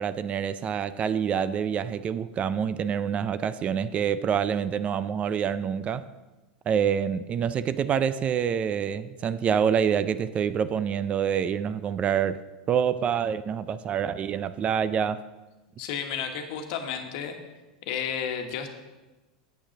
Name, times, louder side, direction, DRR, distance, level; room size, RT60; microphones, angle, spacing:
voice 1, 0.0-6.0 6.7-12.4 12.7-15.2, right 8 dB, 30° right, 14 dB, 0.4 m, -26 dB
voice 2, 15.8-17.4 17.8-18.7, left 7 dB, 60° left, 5 dB, 1.3 m, -32 dB
8.3 x 6.3 x 6.4 m, 1.2 s
hypercardioid pair, 110°, 4 cm